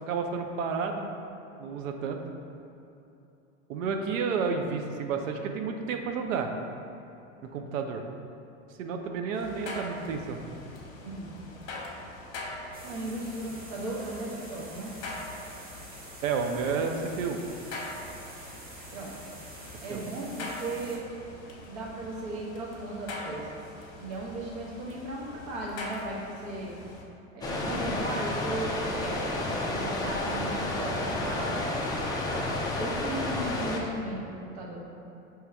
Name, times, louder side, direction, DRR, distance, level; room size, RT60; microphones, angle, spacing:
voice 1, 0.1-1.1 1.6-2.2 3.7-6.5 7.5-8.0 8.8-10.4 16.2-17.4 19.9-20.0, right 5 dB, 75° right, 4 dB, 0.6 m, -31 dB
sound 1, 9.3-27.0, left 2 dB, 40° left, 0.9 m, -43 dB
voice 2, 11.0-11.4 12.8-14.9 18.9-19.2 19.8-21.1 21.6-23.6 24.0-26.7 27.3-31.9 32.6-34.8, right 1 dB, 55° right, -3 dB, 1.2 m, -36 dB
sound 2, 12.7-21.0, right 2 dB, 25° right, 0.8 m, -47 dB
sound 3, 27.4-33.8, left 2 dB, 10° left, 0.3 m, -31 dB
4.6 x 3.1 x 3.4 m, 2.8 s
hypercardioid pair, 105°, 39 cm